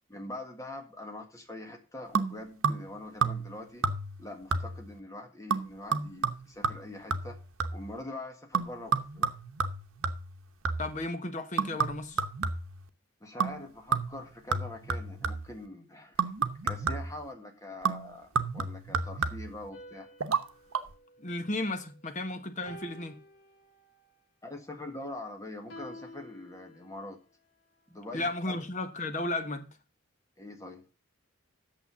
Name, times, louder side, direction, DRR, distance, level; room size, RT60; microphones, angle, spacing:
voice 1, 0.1-3.9 4.2-7.4 7.7-9.3 13.2-16.2 16.6-20.1 24.4-27.2 27.9-28.6 30.4-30.8, left 1 dB, 15° left, 1.6 m, -43 dB
sound 1, 2.1-2.9 3.2-3.6 3.8-4.2 4.5-4.9 5.5-7.9 8.5-11.0 11.6-12.8 13.4-13.6 13.9-15.6 16.2-17.2 17.8-19.6 20.2-20.4 20.7-20.8, right 5 dB, 85° right, 0.9 m, -31 dB
voice 2, 10.8-12.2 21.2-23.2 28.1-29.7, left 2 dB, 35° left, 1.2 m, -34 dB
sound 2, 19.7-22.1 22.7-24.1 25.7-27.2, left 1 dB, 60° left, 2.8 m, -51 dB
8.9 x 6.8 x 6.9 m
head